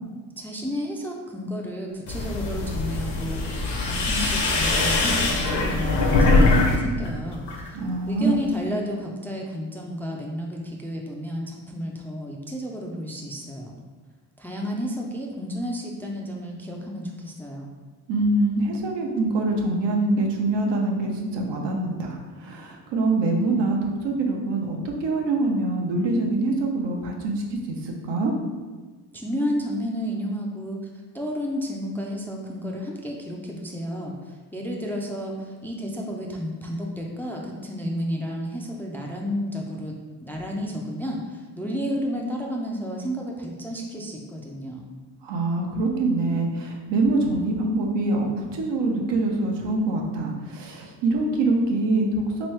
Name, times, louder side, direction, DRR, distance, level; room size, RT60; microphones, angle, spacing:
voice 1, 0.4-7.8 8.1-13.8 14.4-17.7 29.1-30.8 31.1-39.9 40.2-44.8, equal, 5° left, -1 dB, 0.3 m, -31 dB
sound 1, 2.1-6.8 7.1-7.7, left 2 dB, 75° left, 0.9 m, -22 dB
voice 2, 7.7-8.4 18.1-28.4 45.2-52.5, right 2 dB, 75° right, 1 dB, 0.8 m, -24 dB
3.5 x 3.0 x 3.2 m, 1.4 s
cardioid pair, 90°, 42 cm